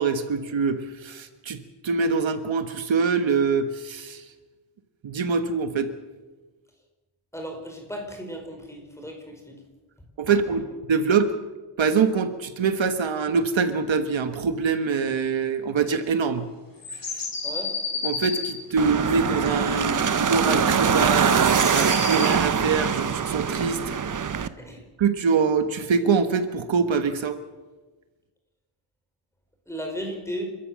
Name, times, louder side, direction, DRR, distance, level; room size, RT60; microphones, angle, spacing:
voice 1, 0.0-4.2 5.0-5.9 10.2-10.6 10.9-11.3 11.8-16.4 16.9-17.3 18.0-23.8 25.0-27.4, right 5 dB, 70° right, 9 dB, 1.4 m, -24 dB
voice 2, 7.3-9.6 10.3-10.4 17.4-17.7 24.6-24.8 29.7-30.4, equal, 5° left, 3 dB, 4.8 m, -35 dB
sound 1, 16.8-18.5 20.0-22.3, left 4 dB, 45° left, 4.0 m, -31 dB
sound 2, 18.8-24.5, right 6 dB, 40° right, 0.9 m, -23 dB
29.5 x 14.0 x 7.6 m, 1.3 s
wide cardioid pair, 160°, 48 cm